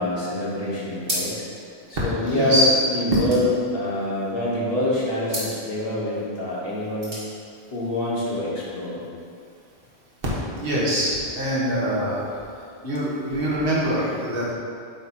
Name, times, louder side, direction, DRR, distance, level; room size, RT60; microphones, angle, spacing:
voice 1, 0.0-1.3 1.9-7.1 7.7-9.0 14.0-14.1, left 1 dB, 60° left, -6 dB, 1.5 m, -25 dB
sound 1, 1.0-1.6 1.9-2.0 2.2-4.4 5.2-5.6 6.7-7.3, equal, 35° right, 1.8 m, -33 dB
voice 2, 2.3-2.7 10.5-12.2 12.8-14.5, equal, 60° right, -8 dB, 1.5 m, -24 dB
8.9 x 3.0 x 4.2 m, 2.3 s
omnidirectional pair, 1.1 m